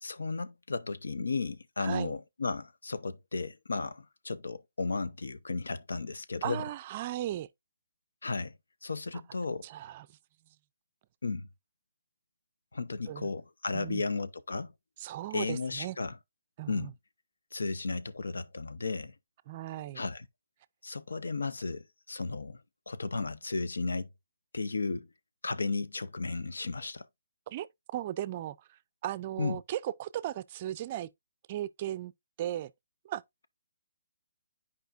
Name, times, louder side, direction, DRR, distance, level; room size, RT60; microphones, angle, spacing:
voice 1, 0.0-6.6 8.2-8.5 8.8-9.7 11.2-11.5 12.7-14.7 15.3-16.1 16.7-16.9 17.5-19.1 20.0-20.3 20.8-22.6 22.9-24.1 24.5-25.1 25.4-27.1 29.4-29.6, left 3 dB, 85° left, 0.7 m, -34 dB
voice 2, 1.8-2.1 6.4-7.5 9.6-10.1 13.1-13.3 13.7-14.0 15.0-16.0 16.6-16.9 19.5-20.0 27.5-31.1 31.5-32.1 32.4-32.7 33.0-33.2, right 13 dB, 35° right, 0.4 m, -36 dB
9.2 x 4.9 x 2.5 m
hypercardioid pair, 150°, 0 cm